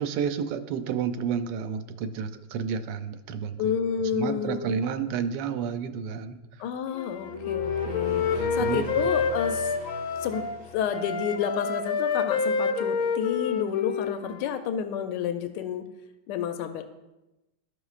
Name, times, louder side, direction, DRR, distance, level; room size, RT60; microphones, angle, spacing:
voice 1, 0.0-3.8 4.1-6.4 8.3-8.9, right 7 dB, 85° right, 9 dB, 1.2 m, -31 dB
voice 2, 3.6-4.7 6.6-9.7 10.2-10.5 10.7-15.8 16.3-16.8, left 8 dB, 85° left, 7 dB, 1.2 m, -30 dB
Wind instrument woodwind instrument, 6.9-10.6 10.9-14.5, left 5 dB, 65° left, 0.9 m, -28 dB
sound 1, 7.1-11.5, equal, 30° right, 0.7 m, -39 dB
13.0 x 5.0 x 2.4 m, 0.99 s
omnidirectional pair, 1.9 m